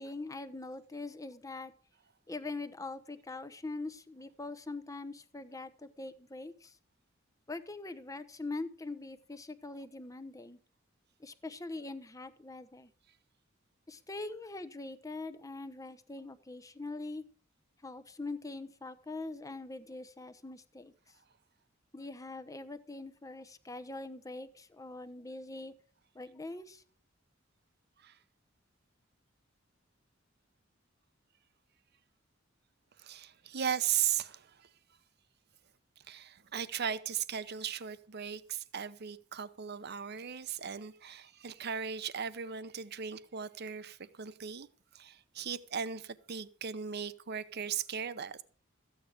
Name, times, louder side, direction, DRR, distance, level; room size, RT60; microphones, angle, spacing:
voice 1, 0.0-1.7 2.3-6.8 7.5-10.6 11.2-12.9 13.9-17.2 17.8-20.9 21.9-25.7 26.1-26.8, left 2 dB, 15° left, 0.9 m, -43 dB
voice 2, 33.0-34.7 36.1-44.7 44.9-48.4, right 8 dB, 55° right, 0.8 m, -37 dB
14.0 x 8.8 x 5.1 m
head